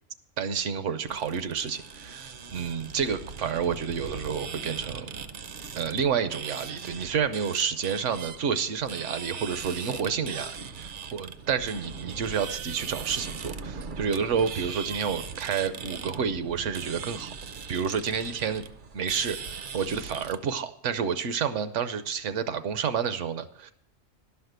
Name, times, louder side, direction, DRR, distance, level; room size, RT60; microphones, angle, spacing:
voice 1, 0.4-5.1 5.7-17.3 17.7-18.6 18.9-23.7, right 7 dB, 70° right, 12 dB, 1.0 m, -29 dB
sound 1, 1.1-20.4, right 6 dB, 50° right, 0.6 m, -40 dB
11.5 x 5.8 x 7.9 m, 0.70 s
omnidirectional pair, 1.3 m